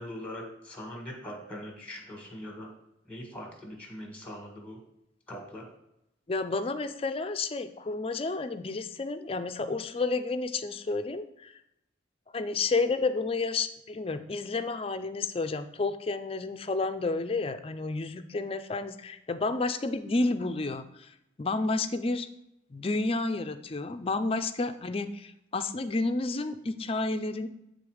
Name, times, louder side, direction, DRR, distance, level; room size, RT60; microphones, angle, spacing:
voice 1, 0.0-2.7 3.0-4.8 5.3-5.6, left 1 dB, 5° left, 1 dB, 1.6 m, -41 dB
voice 2, 6.3-11.5 12.3-22.3 22.7-27.5, left 3 dB, 30° left, 10 dB, 0.4 m, -31 dB
8.8 x 3.8 x 4.9 m, 0.83 s
head